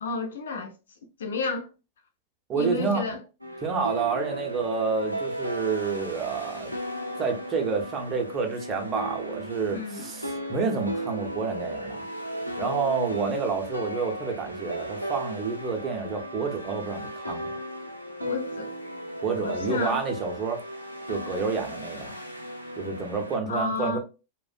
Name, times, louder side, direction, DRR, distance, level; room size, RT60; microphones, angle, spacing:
voice 1, 0.0-0.7 1.2-1.7 2.5-3.2 9.7-10.1 18.2-18.7 19.4-20.0 23.5-24.0, left 3 dB, 65° left, 0.5 m, -31 dB
voice 2, 2.5-3.2 3.6-6.7 7.2-12.1 12.6-17.5 19.2-20.6 21.1-22.2 22.8-24.0, right 5 dB, 25° right, 0.6 m, -29 dB
sound 1, 3.4-23.4, equal, 90° right, 0.4 m, -35 dB
2.4 x 2.1 x 2.4 m
figure-of-eight pair, 90°, 0 cm